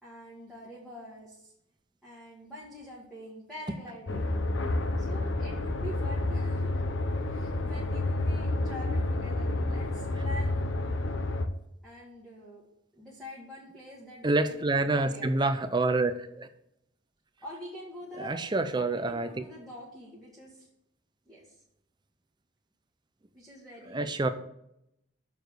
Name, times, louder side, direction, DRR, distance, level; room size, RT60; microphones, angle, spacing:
voice 1, 0.0-1.5 2.0-6.7 7.3-10.8 11.8-12.6 12.9-15.3 17.4-20.7 21.2-21.6 23.3-24.3, equal, ahead, -7 dB, 1.7 m, -46 dB
sound 1, 4.1-11.5, left 2 dB, 70° left, 0.7 m, -29 dB
voice 2, 14.2-16.5 18.2-19.3 23.9-24.3, right 2 dB, 20° right, 10 dB, 0.5 m, -27 dB
6.9 x 4.7 x 6.5 m, 0.79 s
head